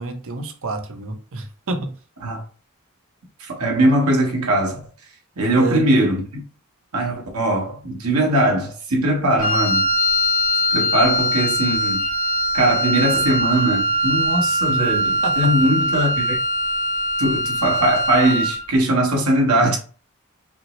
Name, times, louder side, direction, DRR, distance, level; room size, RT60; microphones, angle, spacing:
voice 1, 0.0-1.9 5.5-5.9 14.7-14.8 15.2-15.7, right 3 dB, 65° right, 0.7 m, -28 dB
voice 2, 3.4-4.8 5.4-6.2 6.9-9.9 10.7-12.0 12.5-16.4 17.2-19.8, right 1 dB, 85° right, 1.3 m, -20 dB
Wind instrument woodwind instrument, 9.4-18.7, equal, 40° left, 0.7 m, -21 dB
5.5 x 2.1 x 3.1 m
head